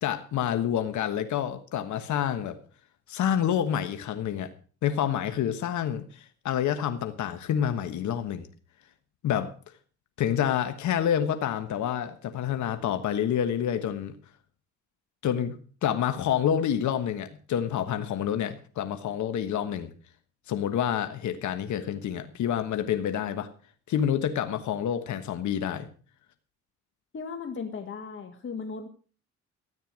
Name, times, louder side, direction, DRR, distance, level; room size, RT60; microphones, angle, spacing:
voice 1, 0.0-2.6 3.1-4.5 4.8-8.5 9.2-9.5 10.2-14.1 15.2-19.9 20.5-23.5 23.9-25.9, left 9 dB, 75° left, 9 dB, 1.4 m, -28 dB
voice 2, 27.1-28.9, left 5 dB, 40° left, 5 dB, 1.8 m, -36 dB
14.0 x 9.1 x 6.2 m, 0.41 s
cardioid pair, 90°, 30 cm